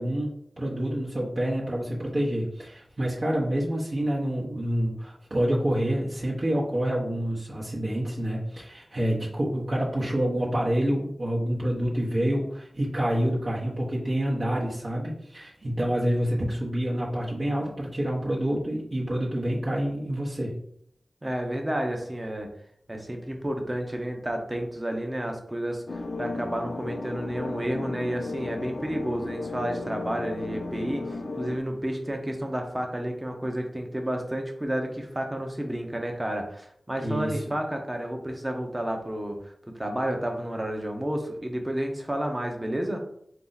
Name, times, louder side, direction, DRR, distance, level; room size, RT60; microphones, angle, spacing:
voice 1, 0.0-20.5 37.0-37.4, right 1 dB, 50° right, -6 dB, 1.0 m, -27 dB
voice 2, 21.2-22.5 22.9-39.4 39.7-43.0, right 1 dB, 20° right, 3 dB, 0.8 m, -31 dB
sound 1, 25.9-31.6, left 3 dB, 80° left, 0.5 m, -34 dB
4.0 x 2.9 x 3.9 m, 0.70 s
wide cardioid pair, 65°, 0 cm